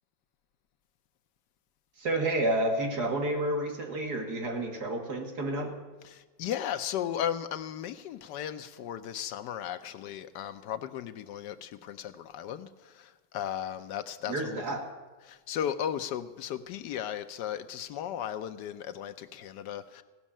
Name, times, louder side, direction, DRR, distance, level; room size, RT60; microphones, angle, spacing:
voice 1, 2.0-5.8 14.3-14.8, right 1 dB, 60° right, 2.4 m, -30 dB
voice 2, 6.0-14.6 15.2-20.0, left 10 dB, 75° left, 1.2 m, -36 dB
16.5 x 6.3 x 8.7 m
omnidirectional pair, 1.9 m